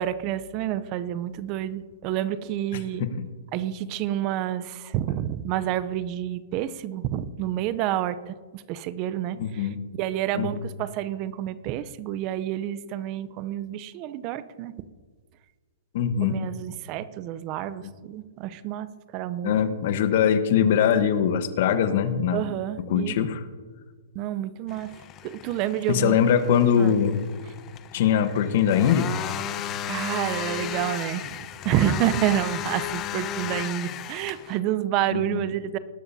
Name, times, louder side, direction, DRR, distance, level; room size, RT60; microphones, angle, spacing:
voice 1, 0.0-3.1 3.5-9.7 10.0-14.7 16.2-19.6 22.3-23.1 24.1-24.9 25.2-26.2 26.8-26.9 29.8-35.8, right 12 dB, 35° right, 15 dB, 0.6 m, -29 dB
voice 2, 9.4-9.8 10.3-10.5 15.9-16.4 17.8-17.9 19.4-22.5 22.9-23.4 25.9-27.2 27.9-29.1 35.1-35.4, left 8 dB, 55° left, 11 dB, 1.1 m, -22 dB
sound 1, 24.7-34.6, left 10 dB, 30° left, 0.8 m, -34 dB
19.5 x 12.0 x 2.8 m, 1.4 s
hypercardioid pair, 135°, 0 cm